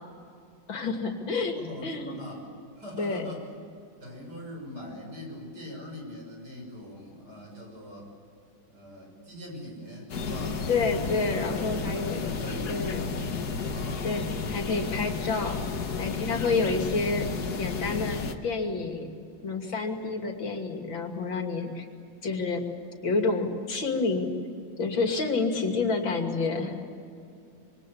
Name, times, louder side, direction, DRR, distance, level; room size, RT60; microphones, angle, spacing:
voice 1, 0.7-2.2 3.0-3.3 10.4-12.2 12.7-13.0 14.0-15.6 16.0-17.3 17.6-19.1 19.4-21.9 22.2-22.6 23.0-24.3 24.8-26.8, left 4 dB, 75° left, 3 dB, 3.5 m, -29 dB
voice 2, 1.5-2.5 2.8-3.4 4.0-8.1 8.7-10.7 11.5-14.1, left 1 dB, 55° right, 1 dB, 7.2 m, -41 dB
sound 1, 10.1-18.3, left 5 dB, 55° left, 1.9 m, -32 dB
27.0 x 23.5 x 8.7 m, 2.5 s
omnidirectional pair, 2.1 m